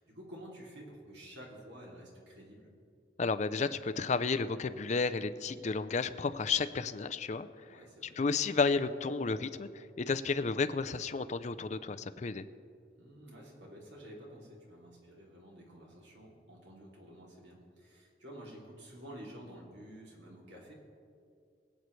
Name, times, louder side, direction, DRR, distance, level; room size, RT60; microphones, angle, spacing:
voice 1, 0.0-2.7 7.7-8.2 13.0-20.7, equal, 75° right, -3 dB, 2.8 m, -51 dB
voice 2, 3.2-7.5 8.2-12.4, left 4 dB, 40° left, 11 dB, 0.4 m, -32 dB
23.0 x 8.3 x 3.2 m, 2.4 s
head